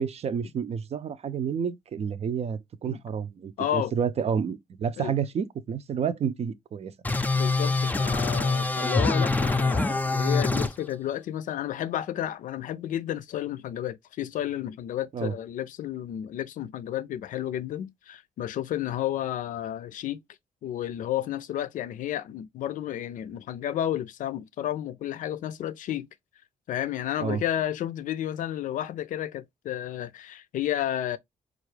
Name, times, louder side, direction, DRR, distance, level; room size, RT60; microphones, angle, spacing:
voice 1, 0.0-6.9 15.1-15.3 27.2-27.4, right 7 dB, 50° right, 0.5 m, -30 dB
voice 2, 3.6-3.9 5.0-5.1 7.3-20.2 20.6-26.1 26.7-31.2, left 11 dB, 75° left, 0.4 m, -31 dB
sound 1, 7.0-10.7, left 3 dB, 10° left, 0.5 m, -24 dB
4.5 x 2.4 x 3.2 m
cardioid pair, 90°, 13 cm